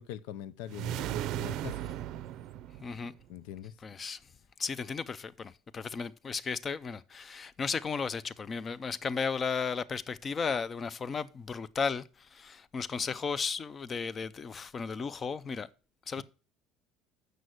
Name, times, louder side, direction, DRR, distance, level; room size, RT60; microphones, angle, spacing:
voice 1, 0.0-1.9 3.3-3.7 16.2-16.3, left 11 dB, 85° left, 0.6 m, -43 dB
sound 1, 0.7-3.3, right 12 dB, 50° right, 0.5 m, -36 dB
voice 2, 2.8-3.1 3.8-4.2 4.6-15.7 16.1-16.2, left 5 dB, 20° left, 0.5 m, -35 dB
8.0 x 6.4 x 7.7 m
cardioid pair, 170°, 0 cm